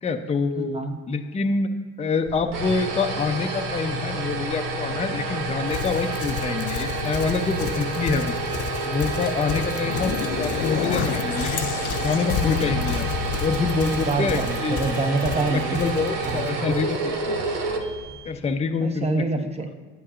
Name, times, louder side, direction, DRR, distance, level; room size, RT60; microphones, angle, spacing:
voice 1, 0.0-0.8 1.1-1.7 2.0-8.4 8.8-11.6 12.0-13.1 13.4-14.8 15.5-17.4 18.2-19.2, left 4 dB, 20° left, 6 dB, 0.6 m, -26 dB
voice 2, 0.6-1.0 13.8-15.8 16.2-16.5 18.8-19.7, right 3 dB, 20° right, 6 dB, 0.9 m, -26 dB
sound 1, 2.2-18.5, right 2 dB, 75° right, 1.3 m, -29 dB
Livestock farm animals working animals, 5.7-16.9, left 5 dB, 45° left, 0.8 m, -34 dB
sound 2, 9.4-14.8, left 9 dB, 80° left, 0.5 m, -30 dB
9.7 x 8.4 x 2.5 m, 1.5 s
supercardioid pair, 80°, 33 cm